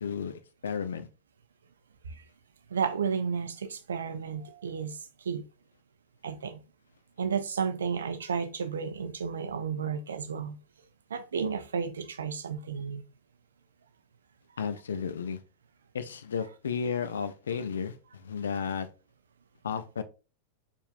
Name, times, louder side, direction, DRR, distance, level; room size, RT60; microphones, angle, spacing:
voice 1, 0.0-1.1 14.6-15.4 15.9-18.9 19.6-20.0, left 6 dB, 65° left, 0.5 m, -33 dB
voice 2, 2.7-5.0 5.2-5.4 6.2-6.6 7.2-10.6 11.1-13.0, right 6 dB, 70° right, 0.5 m, -32 dB
4.4 x 3.6 x 2.5 m
figure-of-eight pair, 90°, 0 cm